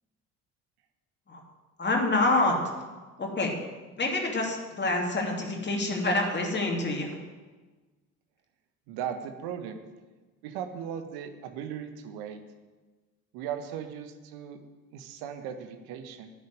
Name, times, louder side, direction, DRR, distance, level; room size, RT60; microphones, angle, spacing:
voice 1, 1.8-2.6 3.2-3.5 4.0-7.2, left 2 dB, 25° left, 1 dB, 2.7 m, -27 dB
voice 2, 8.9-9.8 10.4-12.4 13.3-14.6 14.9-16.3, right 8 dB, 55° right, 8 dB, 1.4 m, -37 dB
10.0 x 6.9 x 9.1 m, 1.3 s
figure-of-eight pair, 55°, 44 cm